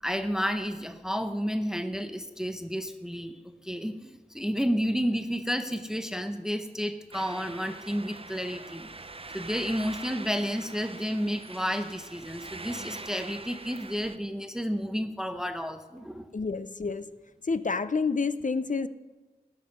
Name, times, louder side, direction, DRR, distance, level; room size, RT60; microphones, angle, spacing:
voice 1, 0.0-8.9 9.3-16.3, equal, 5° right, 7 dB, 0.8 m, -31 dB
sound 1, 7.1-14.2, right 3 dB, 35° right, 0.6 m, -43 dB
voice 2, 16.3-17.1 17.4-18.9, left 4 dB, 55° left, 14 dB, 0.5 m, -29 dB
19.5 x 7.2 x 5.4 m, 1.2 s
wide cardioid pair, 60°, 16 cm